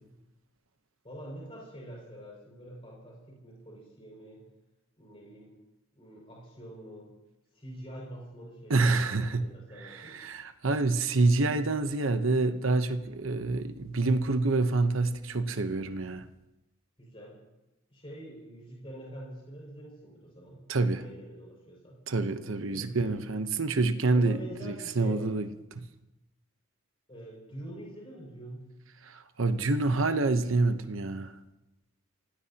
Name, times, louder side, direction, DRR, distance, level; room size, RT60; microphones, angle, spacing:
voice 1, 1.0-4.5 5.0-5.5 5.9-7.1 7.5-10.1 17.0-17.4 17.9-22.0 22.7-23.1 24.1-25.3 27.1-28.7, right 1 dB, 25° left, 5.9 m, -46 dB
voice 2, 8.7-9.5 9.8-16.2 20.7-21.0 22.1-25.8 29.0-31.3, right 3 dB, 75° right, 1.0 m, -27 dB
26.0 x 18.0 x 2.9 m
head